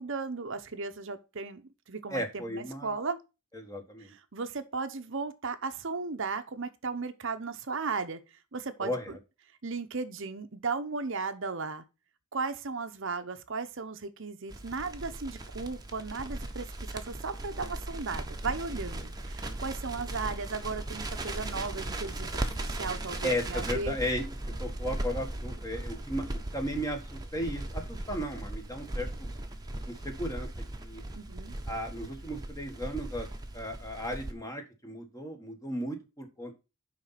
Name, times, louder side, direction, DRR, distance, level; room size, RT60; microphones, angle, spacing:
voice 1, 0.0-3.2 4.1-8.2 8.5-9.2 9.6-11.8 12.3-16.7 16.9-24.0 31.2-31.5, right 4 dB, 60° right, 0.9 m, -36 dB
voice 2, 2.1-2.9 3.5-4.1 8.8-9.2 23.2-24.2 24.6-26.2 26.5-29.3 29.9-30.5 30.8-31.0 31.7-33.3 33.5-36.5, equal, 15° left, 1.6 m, -35 dB
Crackle, 14.5-34.3, right 1 dB, 20° right, 1.1 m, -38 dB
10.0 x 4.1 x 5.7 m
head